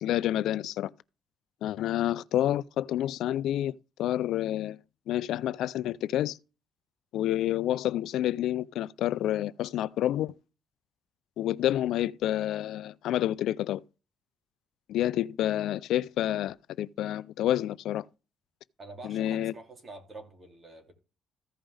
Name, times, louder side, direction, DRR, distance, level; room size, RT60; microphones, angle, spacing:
voice 1, 0.0-0.9 1.6-3.7 4.0-4.8 5.1-6.4 7.1-10.3 11.4-13.8 14.9-18.1 19.0-19.5, left 12 dB, 75° left, 0.4 m, -29 dB
voice 2, 18.8-20.9, right 2 dB, 30° right, 2.9 m, -46 dB
15.0 x 5.4 x 3.4 m
cardioid pair, 125°, 0 cm